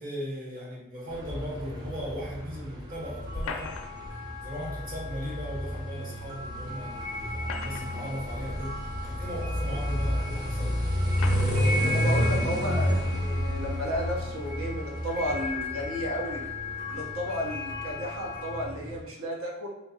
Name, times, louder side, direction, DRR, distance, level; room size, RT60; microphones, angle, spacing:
voice 1, 0.0-3.8 4.4-10.8, equal, 40° right, -5 dB, 1.2 m, -38 dB
sound 1, 1.1-19.0, equal, 20° right, 0.5 m, -31 dB
sound 2, 2.9-18.7, left 3 dB, 60° right, 1.3 m, -38 dB
sound 3, 3.3-4.2 5.9-6.0 7.2-8.1 9.0-9.1 10.1-10.2 11.1-11.6, left 4 dB, 75° left, 0.4 m, -38 dB
voice 2, 11.8-16.4 16.9-19.7, equal, 75° right, -2 dB, 0.9 m, -33 dB
3.2 x 2.8 x 2.8 m, 0.98 s
head